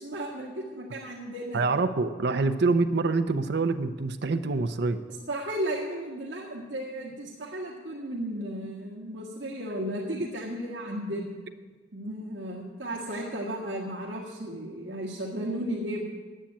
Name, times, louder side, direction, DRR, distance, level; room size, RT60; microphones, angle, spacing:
voice 1, 0.0-1.6 5.3-11.4 11.9-16.0, right 1 dB, 90° right, -4 dB, 1.9 m, -34 dB
voice 2, 1.5-5.0, right 3 dB, 60° right, 9 dB, 0.6 m, -26 dB
10.0 x 8.6 x 8.8 m, 1.4 s
head